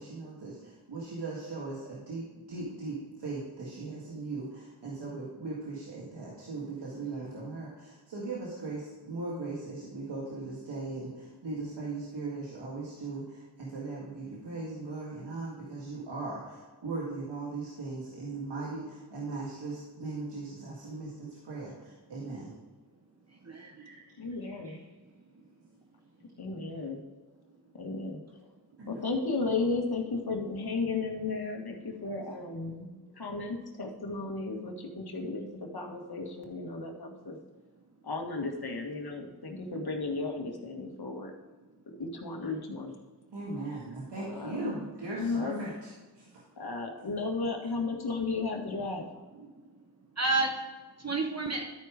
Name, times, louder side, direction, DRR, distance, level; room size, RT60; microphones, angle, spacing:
voice 1, 0.0-22.5 23.5-24.0 24.6-24.8 28.8-29.0 43.3-46.4, right 3 dB, 85° right, -5 dB, 1.9 m, -39 dB
voice 2, 23.3-23.9 49.4-49.9 50.1-50.6 51.0-51.6, right 3 dB, 40° right, 2 dB, 1.1 m, -31 dB
voice 3, 24.2-24.8 26.4-27.0 27.7-28.2 28.9-32.9 33.2-37.4 38.0-41.3 41.9-42.9 44.2-44.8 45.1-45.6 46.6-49.1, left 3 dB, 65° left, 2 dB, 1.8 m, -34 dB
12.5 x 4.7 x 5.0 m, 1.3 s
cardioid pair, 45°, 41 cm